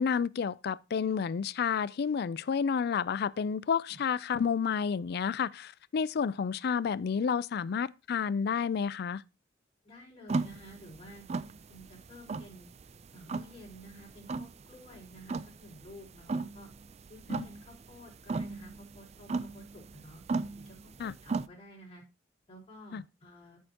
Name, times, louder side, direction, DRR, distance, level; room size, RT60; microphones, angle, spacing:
voice 1, 0.0-9.2 17.3-17.5 21.0-21.1 22.9-23.0, left 6 dB, 55° left, 0.4 m, -30 dB
voice 2, 9.8-11.2 11.7-12.7 13.1-16.7 17.1-20.2 20.6-22.0 22.5-23.6, equal, 30° left, 4.4 m, -51 dB
sound 1, 10.3-21.5, right 3 dB, 35° right, 0.4 m, -37 dB
13.5 x 6.4 x 2.9 m
head